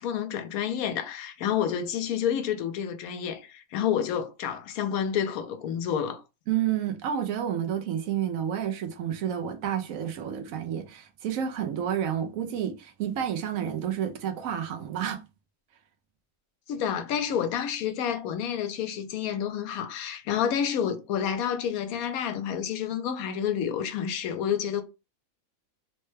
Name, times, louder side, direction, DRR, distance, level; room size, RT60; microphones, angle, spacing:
voice 1, 0.0-6.2 16.7-24.8, left 8 dB, 80° left, 1.0 m, -29 dB
voice 2, 6.5-15.2, right 9 dB, 75° right, 1.0 m, -30 dB
3.2 x 2.1 x 3.2 m
omnidirectional pair, 1.5 m